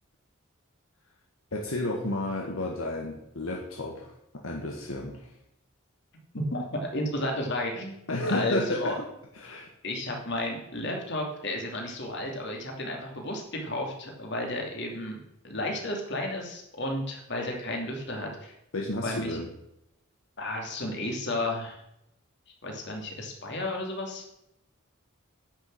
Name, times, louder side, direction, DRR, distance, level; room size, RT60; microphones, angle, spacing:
voice 1, 1.5-4.1 4.4-5.3 8.1-8.9 9.3-9.7 18.7-19.5, left 1 dB, 80° left, 0 dB, 1.5 m, -31 dB
voice 2, 6.3-9.0 9.8-18.5 19.0-19.4 20.4-21.8 22.6-24.2, left 1 dB, 55° left, 1 dB, 2.8 m, -32 dB
10.0 x 6.5 x 7.7 m, 0.83 s
head